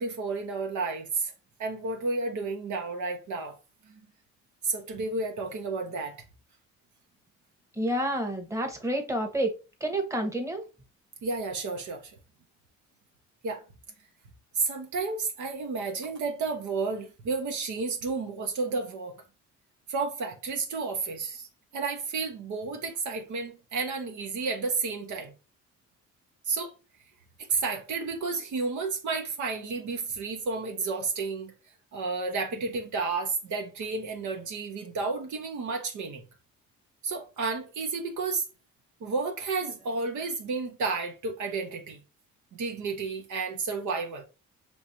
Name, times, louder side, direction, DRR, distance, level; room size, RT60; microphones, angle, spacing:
voice 1, 0.0-1.3 1.6-3.6 3.8-4.0 4.6-6.2 10.2-10.3 11.2-12.2 13.4-13.6 14.5-19.2 19.9-25.3 26.4-26.7 27.4-31.5 31.9-36.3 37.0-38.4 39.0-42.0 42.5-44.3, right 4 dB, 70° right, 1.1 m, -31 dB
voice 2, 7.8-9.5 9.8-10.6, right 1 dB, 10° right, 1.2 m, -29 dB
5.9 x 3.2 x 2.8 m
cardioid pair, 90°, 30 cm